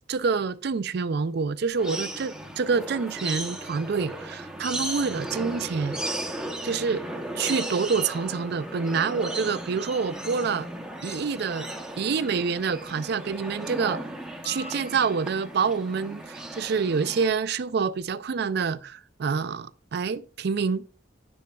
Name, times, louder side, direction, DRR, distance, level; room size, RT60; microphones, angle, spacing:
voice 1, 0.1-6.0 6.6-7.1 7.4-10.7 11.0-11.7 12.0-14.0 14.4-20.8, right 5 dB, 60° right, 0.4 m, -27 dB
sound 1, 1.8-17.3, right 1 dB, 5° right, 0.8 m, -36 dB
sound 2, 14.4-15.8, left 4 dB, 30° left, 0.5 m, -45 dB
10.5 x 6.3 x 2.3 m
head